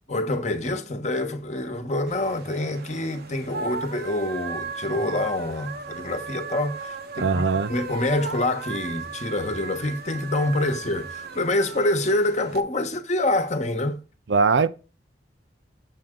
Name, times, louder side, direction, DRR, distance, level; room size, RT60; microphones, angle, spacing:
voice 1, 0.1-7.4 7.7-14.0, left 1 dB, 40° left, 1.1 m, -26 dB
sound 1, 2.1-12.6, right 5 dB, 60° right, 0.8 m, -37 dB
voice 2, 7.2-7.7 14.3-14.7, right 4 dB, 85° right, 0.6 m, -20 dB
7.7 x 7.4 x 3.7 m
head